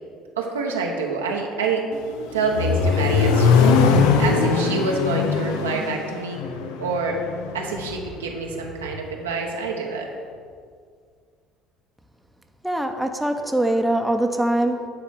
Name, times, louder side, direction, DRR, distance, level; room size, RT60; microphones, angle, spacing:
voice 1, 0.4-1.9 2.3-3.7 4.2-6.4 6.8-7.2 7.5-10.1, right 4 dB, 85° right, 0 dB, 1.0 m, -27 dB
Accelerating revving vroom, 1.9-7.9, left 5 dB, 75° left, 0.6 m, -21 dB
voice 2, 12.6-14.9, right 1 dB, 5° right, 4 dB, 0.9 m, -22 dB
9.8 x 4.1 x 6.3 m, 2.1 s
hypercardioid pair, 60°, 0 cm